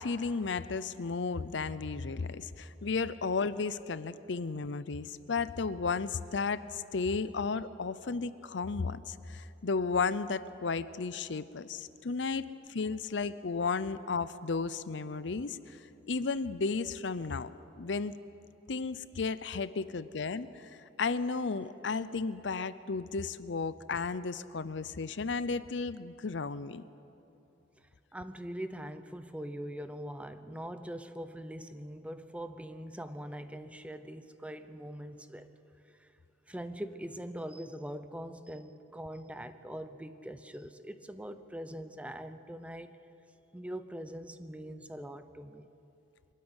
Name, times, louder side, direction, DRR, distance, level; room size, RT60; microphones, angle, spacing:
voice 1, 0.0-15.8 16.1-17.5 17.8-18.1 18.7-20.7 21.0-26.8, left 4 dB, 70° left, 15 dB, 0.6 m, -34 dB
voice 2, 28.1-35.5 36.0-36.1 36.5-43.0 43.5-45.7, equal, 5° right, 10 dB, 0.7 m, -42 dB
24.0 x 13.5 x 9.9 m, 2.8 s
head